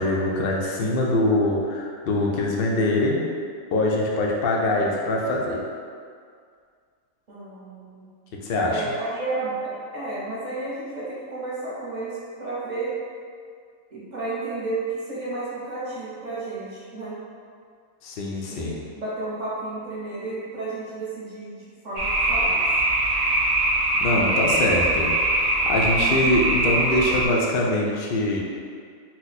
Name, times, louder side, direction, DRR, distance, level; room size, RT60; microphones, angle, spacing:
voice 1, 0.0-3.3 3.7-5.6 8.4-8.8 18.0-18.8 23.0-23.1 24.0-25.1 25.6-28.4, left 1 dB, 75° left, -2 dB, 0.5 m, -23 dB
voice 2, 7.3-8.1 8.7-12.9 13.9-17.2 18.5-22.6, right 2 dB, 35° right, -9 dB, 0.9 m, -32 dB
sound 1, 22.0-27.3, right 2 dB, 80° right, 0.3 m, -22 dB
2.9 x 2.2 x 4.0 m, 2.1 s
omnidirectional pair, 1.5 m